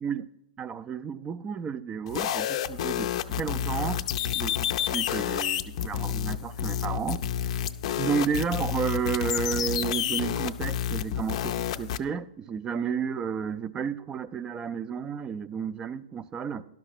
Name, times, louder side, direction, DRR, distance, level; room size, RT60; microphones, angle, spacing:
voice 1, 0.6-3.1 3.4-4.1 4.3-7.2 8.0-16.6, right 7 dB, 15° right, 14 dB, 0.4 m, -32 dB
sound 1, 2.1-12.0, left 10 dB, 45° left, 0.5 m, -29 dB
12.0 x 6.0 x 5.8 m, 0.87 s
figure-of-eight pair, 115°, 4 cm